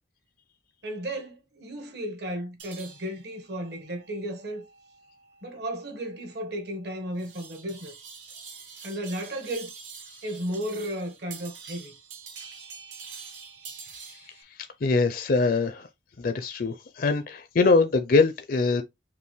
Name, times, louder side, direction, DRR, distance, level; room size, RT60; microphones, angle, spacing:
voice 1, 0.8-4.7 5.4-7.9 8.8-9.7 10.2-11.9, right 1 dB, 60° right, 1.4 m, -34 dB
sound 1, 2.6-14.4, right 6 dB, 85° right, 1.5 m, -46 dB
voice 2, 14.5-15.9 16.2-18.8, left 3 dB, 50° left, 0.5 m, -23 dB
5.3 x 2.5 x 3.2 m
head